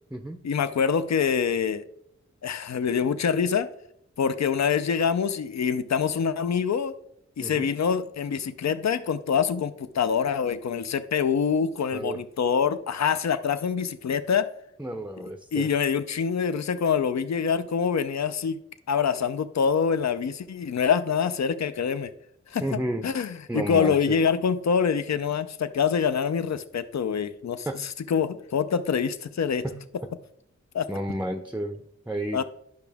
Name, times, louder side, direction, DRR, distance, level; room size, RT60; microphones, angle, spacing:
voice 1, 0.4-1.8 2.4-3.7 4.2-6.9 7.4-14.5 15.5-18.6 18.9-22.1 22.5-29.6 30.7-30.9 32.3-32.4, left 6 dB, 70° left, 12 dB, 0.5 m, -25 dB
voice 2, 14.8-15.7 22.6-23.1 23.5-24.2 27.7-27.8 29.6-30.1 30.9-32.4, right 1 dB, 5° right, 5 dB, 0.5 m, -32 dB
10.5 x 5.9 x 3.5 m, 0.72 s
wide cardioid pair, 90°, 29 cm